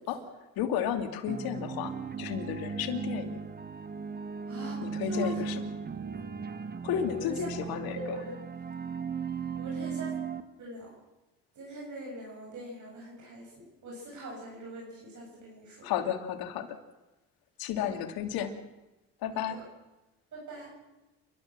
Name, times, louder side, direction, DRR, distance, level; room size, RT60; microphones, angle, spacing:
voice 1, 0.6-1.9 2.2-3.4 4.8-5.7 6.8-8.2 15.8-16.8 17.6-18.6 19.2-19.6, left 9 dB, 80° left, 6 dB, 2.6 m, -32 dB
sound 1, 1.3-10.4, right 6 dB, 25° right, 1.5 m, -37 dB
voice 2, 4.5-5.5 7.1-7.3 8.1-8.2 9.5-10.1 10.6-10.9 11.6-15.9 17.8-18.0 19.5-19.6 20.3-20.7, right 1 dB, 55° right, -3 dB, 7.5 m, -42 dB
29.0 x 13.0 x 7.4 m, 1.0 s
supercardioid pair, 85°, 36 cm